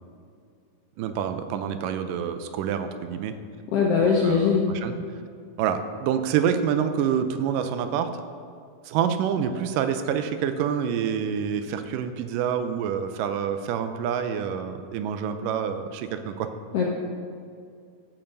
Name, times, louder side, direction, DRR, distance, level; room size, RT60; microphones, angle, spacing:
voice 1, 1.0-3.4 4.0-4.9 5.6-8.1 8.9-16.5, right 8 dB, 80° right, 9 dB, 2.2 m, -27 dB
voice 2, 3.7-4.6 16.7-16.9, left 5 dB, 75° left, -2 dB, 1.4 m, -21 dB
14.0 x 5.6 x 5.4 m, 2.3 s
omnidirectional pair, 3.8 m